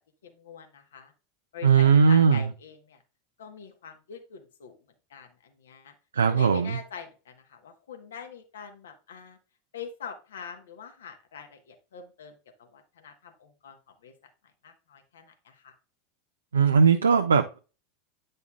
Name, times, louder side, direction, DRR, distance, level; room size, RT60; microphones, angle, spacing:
voice 1, 0.2-1.1 1.5-3.0 3.4-4.8 5.1-5.9 6.2-9.4 9.7-13.8 14.0-14.1 14.6-15.7, left 6 dB, 70° left, 1.3 m, -44 dB
voice 2, 1.6-2.4 6.1-6.8 16.5-17.6, right 6 dB, 80° right, 0.5 m, -19 dB
9.4 x 5.3 x 2.4 m
figure-of-eight pair, 85°, 0 cm